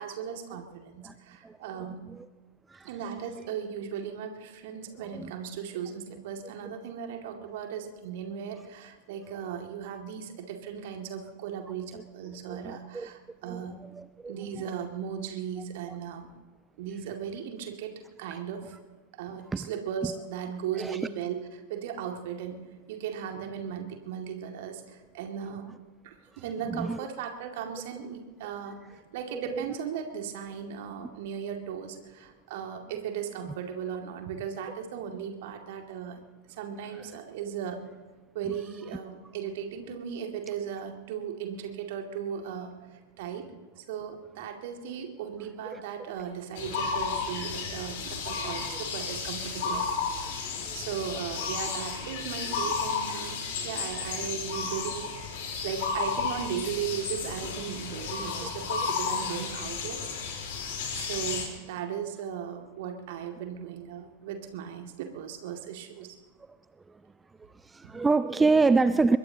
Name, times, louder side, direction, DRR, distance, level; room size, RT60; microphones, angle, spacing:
voice 1, 0.0-2.1 2.8-13.8 14.3-16.3 16.8-18.8 19.1-25.8 26.0-36.2 36.5-37.8 38.3-43.5 43.8-50.4 50.7-60.1 60.9-66.2 67.8-67.9, right 8 dB, 50° right, 4 dB, 2.3 m, -37 dB
voice 2, 12.5-13.1 13.4-14.3 19.5-19.7 20.0-20.1 20.8-21.0 26.6-27.0 29.3-29.7 37.0-37.1 38.5-38.6 45.7-45.8 48.6-48.8 50.7-50.8 53.9-54.1 58.4-58.5 67.6-69.2, right 3 dB, 10° right, 14 dB, 0.4 m, -27 dB
sound 1, 46.2-54.9, right 2 dB, 35° right, 5.7 m, -53 dB
sound 2, 46.6-61.5, left 5 dB, 50° left, 4.0 m, -33 dB
23.0 x 21.5 x 2.9 m, 1.4 s
figure-of-eight pair, 90°, 0 cm